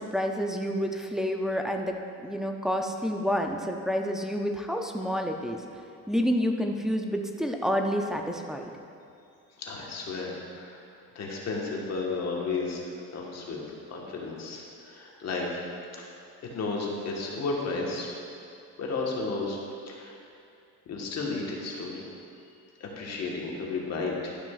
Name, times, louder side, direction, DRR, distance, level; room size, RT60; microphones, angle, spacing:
voice 1, 0.0-2.0 2.2-5.6 6.1-8.7, equal, ahead, 2 dB, 0.3 m, -29 dB
voice 2, 9.6-10.8 11.1-12.8 13.1-13.6 13.9-15.6 16.0-18.1 18.8-19.6 19.9-20.1 20.9-22.0 22.8-24.4, left 3 dB, 45° left, -2 dB, 1.4 m, -33 dB
11.5 x 5.9 x 2.4 m, 2.5 s
cardioid pair, 125°, 37 cm